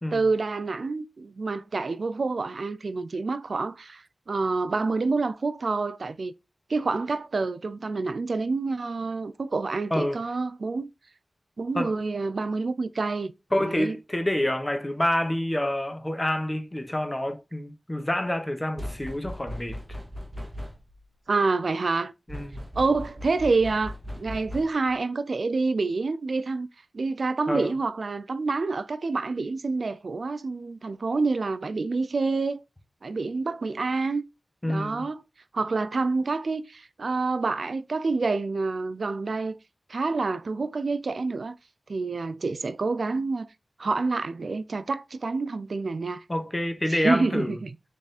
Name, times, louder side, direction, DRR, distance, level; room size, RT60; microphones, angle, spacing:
voice 1, 0.1-6.3 6.7-10.9 11.6-13.3 13.6-14.0 21.3-22.1 22.8-26.7 26.9-32.6 33.0-34.2 34.7-35.2 35.5-39.6 39.9-41.6 41.9-43.5 43.8-46.2 46.9-47.7, right 3 dB, 70° right, 0.3 m, -27 dB
voice 2, 13.5-20.0 22.3-22.6 27.5-27.7 34.6-35.1 46.3-47.6, left 1 dB, 20° left, 0.8 m, -27 dB
sound 1, 18.8-21.0 22.3-25.0, equal, 20° right, 0.8 m, -38 dB
3.6 x 2.4 x 4.1 m
cardioid pair, 55°, 0 cm